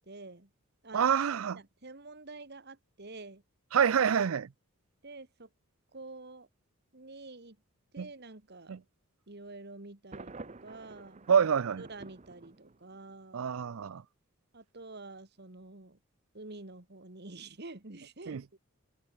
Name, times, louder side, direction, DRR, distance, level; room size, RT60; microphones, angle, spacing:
voice 1, 0.1-0.5 0.8-1.2 1.4-3.4 5.0-5.5 5.9-6.5 6.9-7.6 7.9-8.8 9.3-11.3 11.8-13.5 14.5-16.0 16.3-18.6, right 2 dB, 50° right, 1.8 m, -48 dB
voice 2, 0.9-1.6 3.7-4.5 8.0-8.1 8.7-8.8 11.3-11.8 13.3-14.0 18.3-18.4, right 7 dB, 70° right, 0.4 m, -27 dB
Thunder, 10.1-13.1, right 3 dB, 30° right, 0.8 m, -49 dB
head